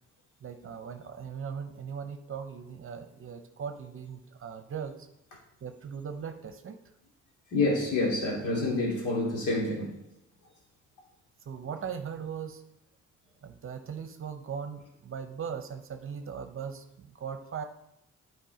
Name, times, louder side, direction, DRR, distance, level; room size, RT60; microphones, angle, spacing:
voice 1, 0.4-5.1 5.6-6.8 11.4-12.6 13.4-17.6, right 7 dB, 45° right, 8 dB, 0.8 m, -39 dB
voice 2, 7.5-10.0, left 2 dB, 85° left, -2 dB, 2.7 m, -28 dB
9.3 x 4.8 x 5.0 m, 0.82 s
cardioid pair, 90°, 30 cm